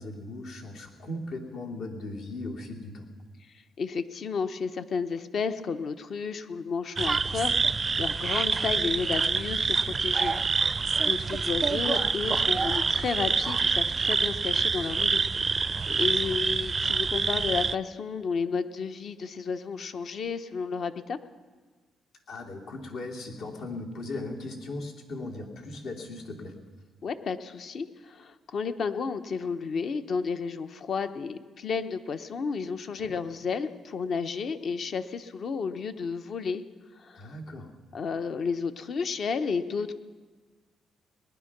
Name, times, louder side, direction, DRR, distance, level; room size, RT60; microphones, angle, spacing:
voice 1, 0.0-3.1 15.9-16.0 16.2-16.3 22.3-26.6 33.0-33.1 37.2-37.7, left 2 dB, 75° left, 0 dB, 2.7 m, -38 dB
voice 2, 3.8-10.8 11.0-15.3 16.0-21.2 27.0-36.6 37.0-37.3 37.9-39.9, left 5 dB, 55° left, 10 dB, 0.9 m, -32 dB
sound 1, 7.0-17.7, right 4 dB, 35° right, 0.4 m, -26 dB
19.5 x 10.5 x 6.0 m, 1.4 s
cardioid pair, 90°, 0 cm